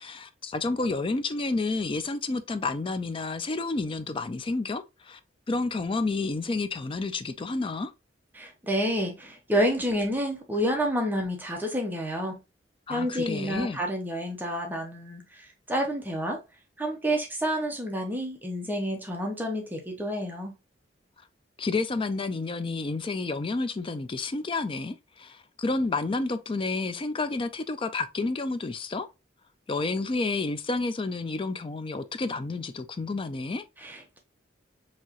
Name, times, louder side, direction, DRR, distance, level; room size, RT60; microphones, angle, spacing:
voice 1, 0.0-5.2 5.5-7.9 12.9-13.8 21.6-29.1 29.7-33.7, left 3 dB, 30° left, 0.4 m, -30 dB
voice 2, 8.3-12.4 12.9-16.4 16.8-20.5 33.8-34.2, equal, 10° right, 0.7 m, -29 dB
4.6 x 2.9 x 2.9 m
head